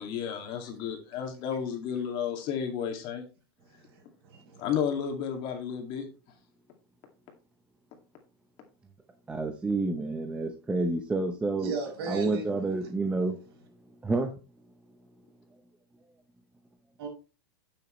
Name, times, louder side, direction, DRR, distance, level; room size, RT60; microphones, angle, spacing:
voice 1, 0.0-3.2 4.6-6.1, left 8 dB, 40° left, 2.2 m, -32 dB
voice 2, 3.7-4.7 11.6-12.4 17.0-17.1, right 3 dB, 70° right, 5.6 m, -36 dB
voice 3, 9.3-11.8 12.1-13.4 14.0-14.3, right 3 dB, 10° right, 0.7 m, -29 dB
10.0 x 6.9 x 3.2 m
supercardioid pair, 155°, 13 cm